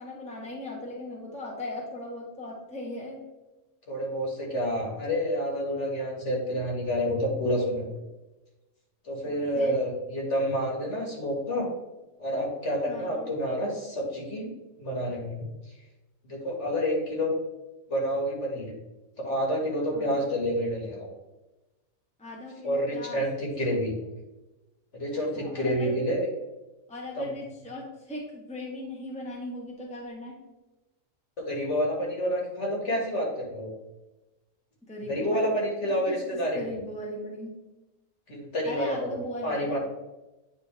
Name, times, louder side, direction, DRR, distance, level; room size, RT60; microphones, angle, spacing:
voice 1, 0.0-3.2 9.2-9.8 12.9-13.3 19.9-20.3 22.2-23.2 24.0-24.1 25.3-26.0 26.9-30.4 34.8-37.5 38.6-39.8, left 1 dB, 5° left, -2 dB, 1.1 m, -39 dB
voice 2, 3.9-7.9 9.0-11.7 12.2-14.5 14.8-15.7 16.3-17.3 17.9-18.7 19.2-21.1 22.6-23.9 24.9-26.3 27.2-27.3 31.4-33.7 35.1-36.6 38.3-39.8, equal, 55° left, -2 dB, 2.0 m, -29 dB
9.0 x 4.3 x 3.3 m, 1.1 s
omnidirectional pair, 1.5 m